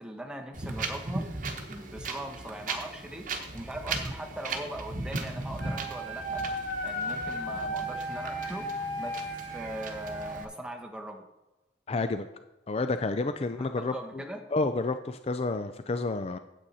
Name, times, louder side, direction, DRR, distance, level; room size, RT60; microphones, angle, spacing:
voice 1, 0.0-6.5 6.8-9.2 9.5-11.2 13.6-14.5, right 1 dB, 5° right, 2 dB, 1.0 m, -40 dB
Wind, 0.5-10.4, right 3 dB, 50° right, 1.1 m, -37 dB
Wind instrument woodwind instrument, 5.6-10.4, equal, 85° left, 2.2 m, -35 dB
voice 2, 11.9-12.3 12.7-14.2 14.5-16.4, left 3 dB, 35° left, 9 dB, 0.4 m, -30 dB
9.0 x 8.1 x 4.2 m, 1.0 s
head